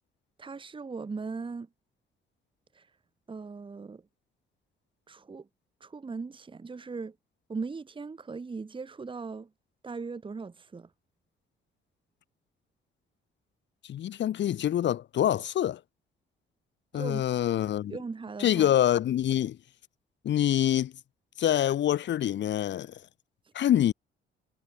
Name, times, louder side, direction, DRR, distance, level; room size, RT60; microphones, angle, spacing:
voice 1, 0.4-1.7 2.7-2.9 3.3-4.0 5.1-5.5 5.8-7.1 7.5-9.5 9.8-10.9 16.9-17.2 17.9-18.7, right 4 dB, 25° right, 1.4 m, -38 dB
voice 2, 13.8-15.8 16.9-18.0 18.4-19.6 20.2-20.9 21.4-23.0 23.5-23.9, left 11 dB, 65° left, 1.3 m, -26 dB
cardioid pair, 90°, 20 cm